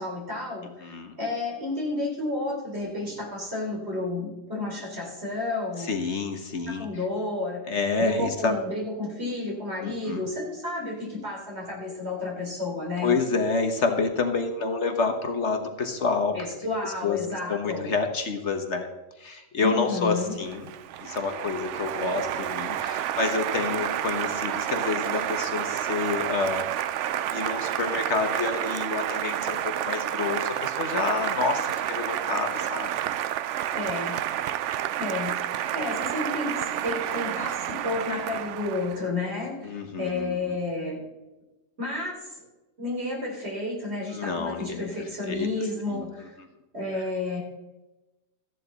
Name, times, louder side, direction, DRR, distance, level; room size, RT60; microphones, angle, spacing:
voice 1, 0.0-5.9 6.7-13.2 16.3-17.9 19.6-20.3 33.7-34.2 35.0-35.3 35.7-41.0 41.8-42.4 42.8-46.4 46.7-47.4, left 2 dB, 50° right, -2 dB, 4.2 m, -31 dB
voice 2, 0.8-1.2 5.8-6.9 7.7-8.6 9.8-10.2 13.0-16.4 16.8-17.2 17.5-18.9 19.2-20.7 21.0-32.9 39.6-40.6 44.1-44.9 45.3-45.5 45.9-46.0, left 4 dB, 60° left, 6 dB, 1.4 m, -28 dB
Applause, 20.1-39.0, right 11 dB, 70° right, 0.8 m, -30 dB
14.5 x 10.5 x 4.0 m, 1.0 s
omnidirectional pair, 1.4 m